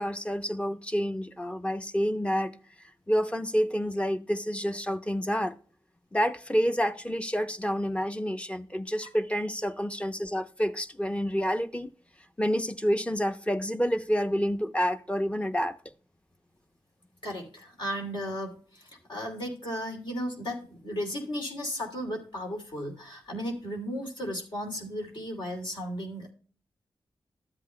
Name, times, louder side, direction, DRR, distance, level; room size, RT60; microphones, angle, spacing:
voice 1, 0.0-2.5 3.1-5.6 6.1-11.9 12.4-15.8, equal, 15° left, 0.7 m, -28 dB
voice 2, 17.2-26.3, equal, 60° left, 2.8 m, -35 dB
12.5 x 8.3 x 2.2 m
cardioid pair, 50°, 9 cm